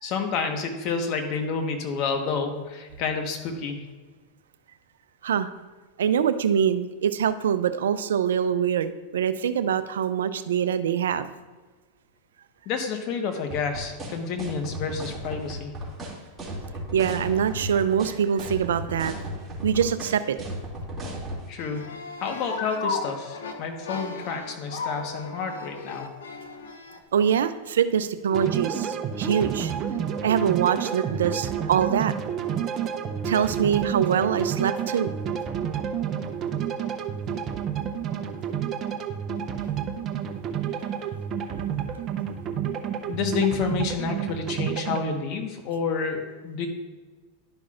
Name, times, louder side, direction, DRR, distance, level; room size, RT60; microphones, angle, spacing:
voice 1, 0.0-3.8 12.6-15.8 21.5-21.9 22.2-26.1 43.1-46.7, left 5 dB, 50° left, 4 dB, 1.3 m, -29 dB
voice 2, 6.0-11.3 16.9-19.1 19.6-20.4 27.1-29.7 30.2-32.1 33.2-35.1, right 8 dB, 85° right, 12 dB, 0.4 m, -24 dB
sound 1, 13.5-21.4, right 1 dB, 15° right, 2.5 m, -35 dB
sound 2, 21.6-27.0, left 4 dB, 85° left, 0.8 m, -35 dB
sound 3, 28.3-45.1, right 8 dB, 35° right, 0.7 m, -30 dB
11.5 x 5.9 x 2.5 m, 1.3 s
hypercardioid pair, 115°, 0 cm